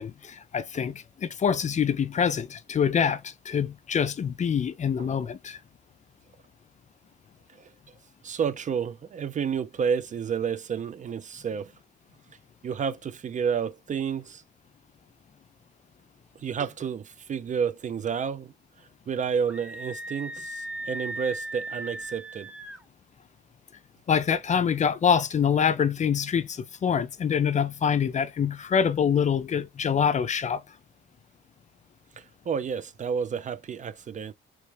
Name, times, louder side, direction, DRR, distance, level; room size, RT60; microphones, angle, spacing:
voice 1, 0.0-5.6 24.1-30.6, left 7 dB, 35° left, 0.4 m, -25 dB
voice 2, 8.2-11.7 12.6-14.4 16.4-18.5 19.1-22.5 32.2-34.3, right 7 dB, 40° right, 0.4 m, -30 dB
Screaming, 19.5-22.8, right 1 dB, 5° right, 0.7 m, -37 dB
3.2 x 3.0 x 3.1 m
cardioid pair, 90°, 20 cm